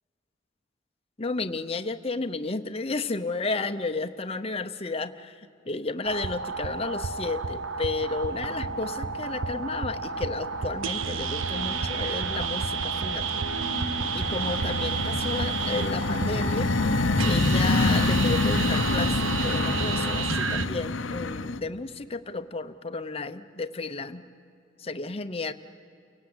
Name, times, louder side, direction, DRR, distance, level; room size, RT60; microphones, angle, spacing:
voice 1, 1.2-13.2 14.1-16.7 17.2-24.2 24.8-25.5, left 3 dB, 30° left, 8 dB, 0.8 m, -32 dB
sound 1, 6.0-20.7, right 5 dB, 80° right, 0.9 m, -31 dB
sound 2, 8.5-9.1 9.4-10.1 10.5-21.6, left 3 dB, 75° left, 0.8 m, -28 dB
29.5 x 17.5 x 9.6 m, 2.6 s
head